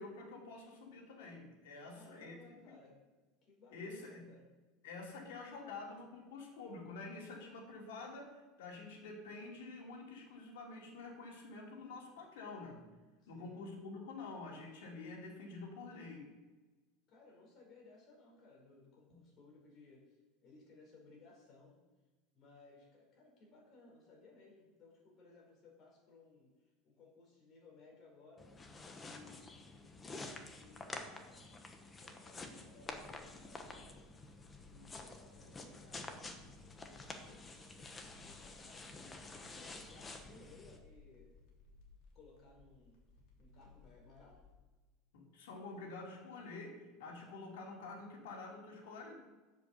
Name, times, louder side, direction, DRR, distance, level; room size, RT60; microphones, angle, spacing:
voice 1, 0.0-2.4 2.7-2.8 3.7-4.3 4.8-12.8 13.3-16.3 19.1-19.2 45.1-49.2, left 3 dB, 85° left, 0 dB, 2.8 m, -48 dB
voice 2, 1.8-3.0 3.4-4.5 13.2-13.7 17.1-21.8 22.3-28.5 29.0-31.4 32.0-34.1 34.7-38.9 39.3-41.3 42.1-43.0 43.4-44.4, left 3 dB, 40° left, 0 dB, 4.0 m, -61 dB
sound 1, 28.4-40.8, left 3 dB, 15° left, 1.1 m, -50 dB
sound 2, 32.8-44.5, left 3 dB, 60° left, 3.0 m, -63 dB
7.8 x 7.4 x 6.8 m, 1.2 s
supercardioid pair, 145°, 0 cm